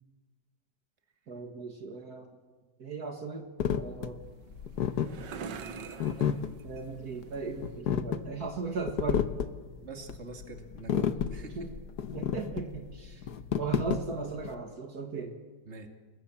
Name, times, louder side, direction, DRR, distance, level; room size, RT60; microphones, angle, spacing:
voice 1, 1.3-2.3 2.8-3.4 3.8-4.2 6.6-9.3 11.6-11.7 12.1-13.2 13.6-15.4, right 4 dB, 60° right, 4 dB, 2.4 m, -37 dB
sound 1, 3.6-14.5, left 8 dB, 70° left, 1.5 m, -32 dB
sound 2, 4.2-7.8, right 6 dB, 90° right, 1.9 m, -45 dB
voice 2, 9.8-11.7 13.1-13.4 15.7-15.9, right 3 dB, 40° right, 5 dB, 2.5 m, -45 dB
29.0 x 21.0 x 7.2 m, 1.3 s
omnidirectional pair, 1.9 m